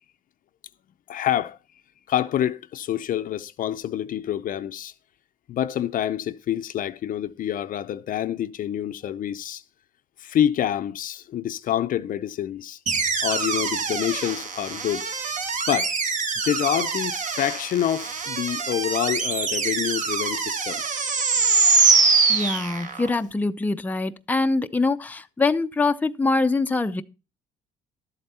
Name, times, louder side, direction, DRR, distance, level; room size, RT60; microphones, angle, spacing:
voice 1, 1.1-1.6 2.1-4.9 5.5-9.6 10.2-12.8 13.2-15.1 15.7-15.9 16.4-20.8 21.6-21.8, left 11 dB, 55° left, 0.6 m, -27 dB
sound 1, 12.9-23.1, right 4 dB, 45° right, 1.6 m, -24 dB
voice 2, 22.3-27.0, left 3 dB, 10° left, 0.6 m, -24 dB
12.0 x 7.8 x 4.2 m
cardioid pair, 110°, 17 cm